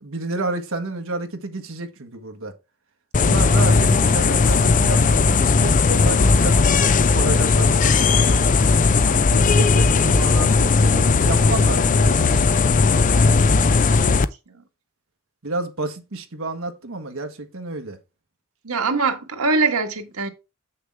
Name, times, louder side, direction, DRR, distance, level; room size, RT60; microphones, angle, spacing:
voice 1, 0.0-2.5 3.2-8.5 9.0-12.6 15.4-18.0, right 2 dB, 65° right, 1.5 m, -30 dB
sound 1, 3.1-14.3, left 4 dB, 40° left, 0.5 m, -17 dB
voice 2, 18.6-20.3, right 4 dB, 85° right, 1.7 m, -23 dB
7.7 x 6.5 x 3.5 m
head